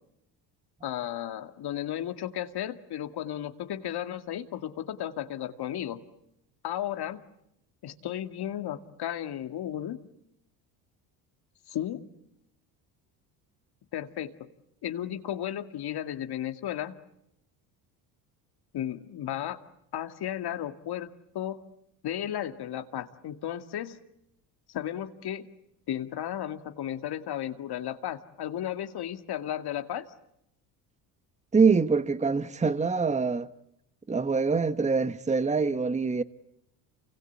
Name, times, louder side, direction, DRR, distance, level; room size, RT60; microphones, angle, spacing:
voice 1, 0.8-6.0 6.6-7.2 7.8-10.0 11.7-12.1 13.9-14.5 14.8-16.9 18.7-19.6 19.9-21.6 22.0-24.0 24.7-25.5 25.9-30.1, left 11 dB, 55° left, 2.3 m, -34 dB
voice 2, 31.5-33.5 34.1-36.2, right 4 dB, 15° right, 1.2 m, -24 dB
29.0 x 25.0 x 8.3 m
supercardioid pair, 75°, 46 cm